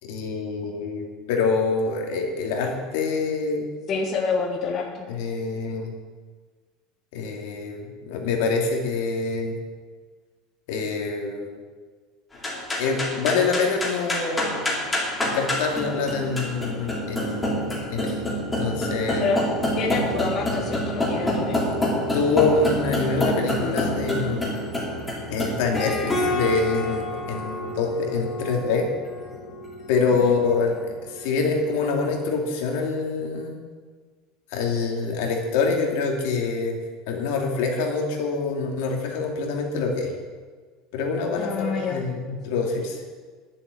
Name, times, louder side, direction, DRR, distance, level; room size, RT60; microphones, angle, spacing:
voice 1, 0.0-3.7 5.1-5.9 7.1-9.6 10.7-11.5 12.8-14.8 15.2-19.3 22.1-24.6 25.3-28.9 29.9-33.6 34.5-36.8 37.1-40.1 40.9-43.0, left 4 dB, 75° left, 1 dB, 2.6 m, -26 dB
voice 2, 3.9-5.0 19.2-19.4 19.8-21.6 30.2-30.3 41.4-42.0, left 4 dB, 35° left, 1 dB, 1.4 m, -27 dB
sound 1, 12.3-31.9, left 1 dB, 10° left, 3.0 m, -28 dB
11.0 x 7.4 x 9.5 m, 1.5 s
cardioid pair, 155°, 0 cm